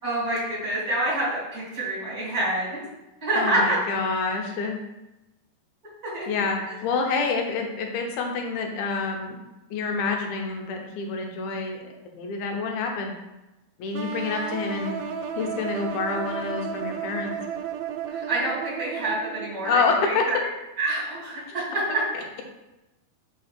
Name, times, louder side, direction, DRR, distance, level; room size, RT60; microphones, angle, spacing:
voice 1, 0.0-2.8 3.2-3.8 6.1-6.3 18.1-20.4 20.8-22.0, right 1 dB, 25° right, -6 dB, 2.5 m, -27 dB
voice 2, 3.3-4.8 6.3-9.4 9.7-11.9 12.1-13.1 13.8-15.0 15.4-17.3 19.6-20.2 21.5-21.6 22.1-22.2, left 4 dB, 80° left, 2 dB, 2.7 m, -27 dB
sound 1, 13.9-19.8, right 7 dB, 80° right, 2.0 m, -33 dB
5.6 x 3.8 x 6.0 m, 0.98 s
omnidirectional pair, 4.3 m